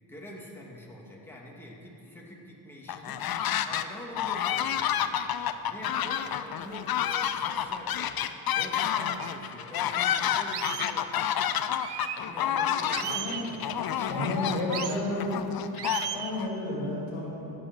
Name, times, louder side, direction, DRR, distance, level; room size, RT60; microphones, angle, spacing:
voice 1, 0.0-5.2 5.6-11.4 12.2-15.0, left 1 dB, 5° left, -3 dB, 2.3 m, -45 dB
sound 1, 2.9-3.9 4.2-16.5, left 10 dB, 50° left, 0.6 m, -29 dB
sound 2, 9.2-9.3 9.8-9.9 10.5-10.9 11.8-12.2 12.9-13.5 14.7-15.0 15.8-16.3, right 10 dB, 55° right, 0.7 m, -35 dB
voice 2, 13.1-13.5 14.1-15.5 16.1-17.6, left 1 dB, 80° left, -4 dB, 2.5 m, -32 dB
15.5 x 5.3 x 6.1 m, 2.8 s
supercardioid pair, 50°, 48 cm